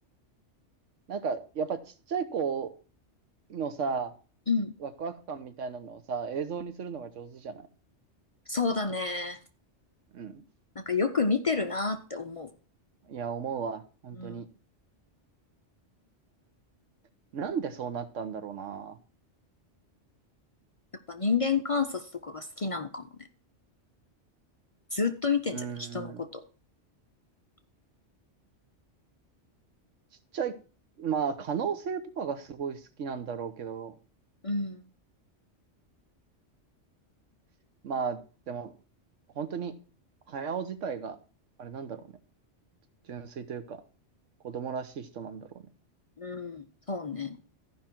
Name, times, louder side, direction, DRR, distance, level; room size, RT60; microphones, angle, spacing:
voice 1, 1.1-2.7 3.5-4.1 4.8-7.6 10.1-10.4 13.1-14.5 17.3-19.0 25.5-26.2 30.3-30.5 31.0-33.9 37.8-38.2 38.5-38.7 39.4-39.7 40.3-41.2 41.6-42.0 43.1-43.8 44.4-45.5, right 6 dB, 90° right, 10 dB, 1.3 m, -34 dB
voice 2, 8.5-9.4 10.8-12.5 14.1-14.4 21.1-23.1 24.9-26.4 34.4-34.8 46.2-47.4, left 4 dB, 40° left, 7 dB, 0.5 m, -30 dB
14.0 x 5.4 x 4.4 m, 0.36 s
omnidirectional pair, 1.2 m